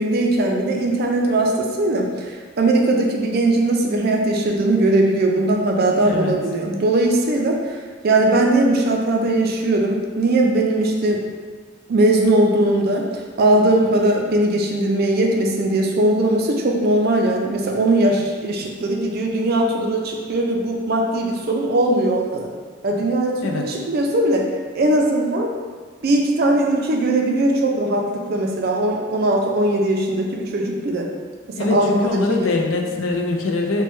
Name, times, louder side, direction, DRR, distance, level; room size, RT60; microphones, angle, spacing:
voice 1, 0.0-7.8 8.0-11.2 11.9-13.1 13.4-22.5 22.8-24.5 24.7-25.5 26.0-31.1 31.5-32.5, right 1 dB, 50° right, 1 dB, 0.4 m, -19 dB
voice 2, 6.0-6.4 23.4-23.7 31.6-33.8, left 3 dB, 70° left, 2 dB, 0.4 m, -22 dB
3.1 x 2.2 x 3.0 m, 1.5 s
head